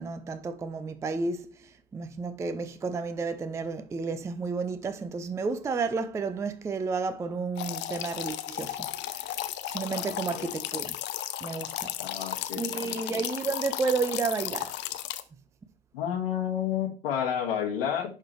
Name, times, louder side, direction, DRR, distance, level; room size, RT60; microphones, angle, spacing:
voice 1, 0.0-9.2 9.7-11.0 11.4-11.9 12.6-14.8, right 4 dB, 10° right, 0.4 m, -32 dB
sound 1, 7.6-15.2, left 13 dB, 35° left, 0.6 m, -35 dB
voice 2, 9.9-10.5 12.0-13.0 15.9-18.2, left 9 dB, 65° left, 1.6 m, -31 dB
10.5 x 3.8 x 3.0 m
figure-of-eight pair, 75°, 31 cm